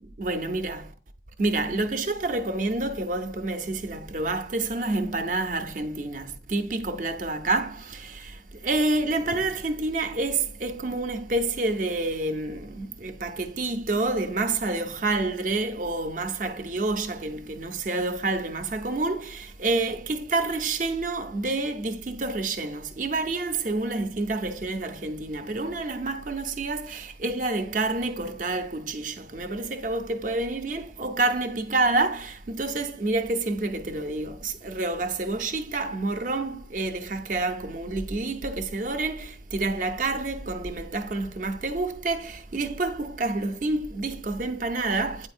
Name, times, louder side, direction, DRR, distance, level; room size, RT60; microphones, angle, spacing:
voice 1, 0.0-0.9 1.4-45.3, right 2 dB, 45° right, 0.6 m, -28 dB
8.8 x 4.2 x 2.5 m
head